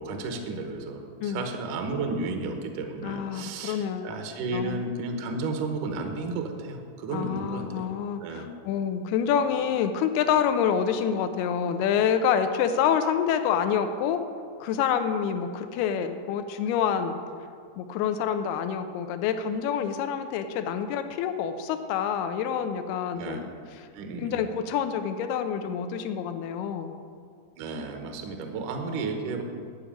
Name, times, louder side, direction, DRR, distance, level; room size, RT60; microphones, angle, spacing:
voice 1, 0.0-7.9 8.2-8.5 23.2-23.4 23.9-24.4 27.6-29.4, right 3 dB, 70° right, 4 dB, 2.0 m, -33 dB
voice 2, 3.0-4.1 4.5-4.8 7.1-14.2 14.6-17.2 17.8-23.5 24.2-27.0, left 8 dB, 85° left, 8 dB, 2.6 m, -27 dB
11.0 x 6.0 x 8.7 m, 2.3 s
omnidirectional pair, 4.8 m